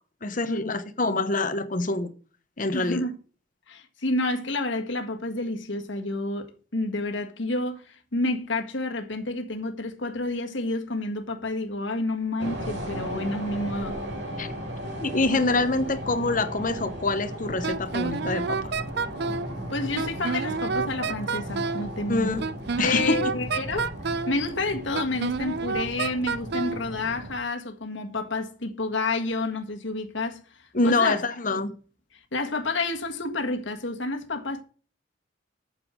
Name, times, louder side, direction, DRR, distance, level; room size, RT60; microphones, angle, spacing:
voice 1, 0.2-2.1 2.6-3.0 14.4-14.5 15.0-18.6 22.1-22.4 22.8-23.2 30.7-31.7, left 3 dB, 45° left, 1.0 m, -25 dB
voice 2, 2.7-3.2 3.7-14.0 19.7-22.4 22.8-23.9 24.3-31.2 32.3-34.6, left 2 dB, 70° left, 1.8 m, -29 dB
sound 1, 12.4-27.4, equal, 75° right, 3.9 m, -36 dB
Wind instrument woodwind instrument, 17.6-19.5 20.0-21.9 22.4-24.4 24.9-26.8, right 4 dB, 55° right, 0.5 m, -29 dB
9.0 x 6.8 x 6.2 m
head